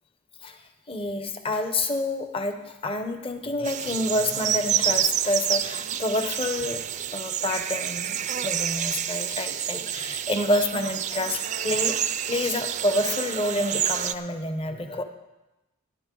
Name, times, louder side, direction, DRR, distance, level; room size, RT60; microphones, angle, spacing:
voice 1, 0.9-11.9 12.3-15.0, left 1 dB, 25° left, 7 dB, 0.9 m, -28 dB
sound 1, 3.6-14.1, right 10 dB, 35° right, 0.4 m, -28 dB
15.5 x 10.0 x 3.8 m, 1.0 s
head